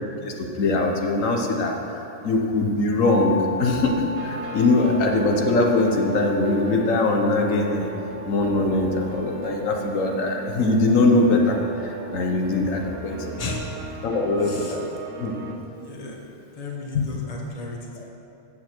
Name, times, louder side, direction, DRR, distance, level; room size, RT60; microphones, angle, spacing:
voice 1, 0.2-2.0 2.2-3.3 3.6-7.9 8.3-13.3 14.0-14.9 15.2-15.3 16.9-17.1, left 2 dB, 90° left, 1 dB, 1.4 m, -22 dB
sound 1, 3.0-12.8, left 2 dB, 20° right, 0.6 m, -37 dB
sound 2, 4.2-15.6, right 5 dB, 75° right, 1.2 m, -37 dB
voice 2, 14.4-14.8 15.8-16.2 16.5-18.1, left 3 dB, 30° left, 0 dB, 1.2 m, -35 dB
15.0 x 7.1 x 4.5 m, 2.9 s
omnidirectional pair, 1.3 m